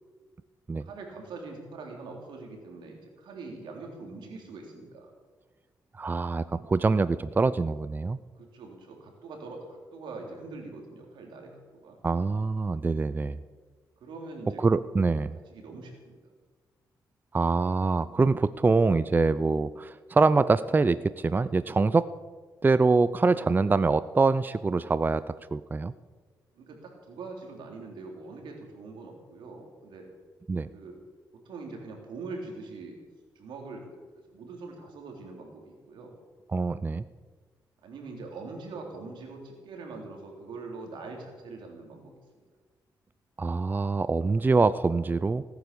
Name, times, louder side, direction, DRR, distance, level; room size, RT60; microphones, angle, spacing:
voice 1, 0.9-5.1 8.4-12.0 14.0-14.6 15.5-16.2 26.5-30.1 30.7-31.0 31.5-33.0 33.4-33.8 34.3-36.1 37.8-42.1, right 3 dB, 85° right, 1 dB, 3.6 m, -43 dB
voice 2, 6.0-8.2 12.0-13.4 14.6-15.4 17.3-22.1 22.6-25.2 25.5-25.9 30.5-30.7 36.5-37.0 43.4-45.4, right 3 dB, 25° right, 15 dB, 0.5 m, -24 dB
18.0 x 9.7 x 6.9 m, 1.4 s
cardioid pair, 80°, 8 cm